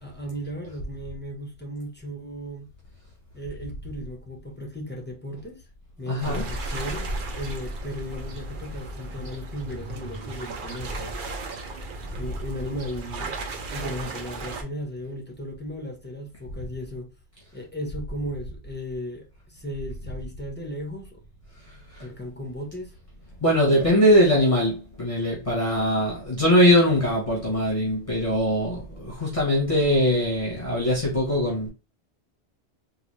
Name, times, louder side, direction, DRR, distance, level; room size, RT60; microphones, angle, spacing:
voice 1, 0.0-2.7 3.3-5.6 6.0-11.2 12.1-17.1 17.5-21.2 22.0-22.9, equal, 10° left, 0.7 m, -36 dB
voice 2, 6.1-6.5 21.9-22.0 23.4-31.7, equal, 30° left, 1.2 m, -21 dB
sound 1, 6.2-14.6, right 2 dB, 55° right, 0.8 m, -35 dB
3.9 x 2.5 x 3.1 m
omnidirectional pair, 1.1 m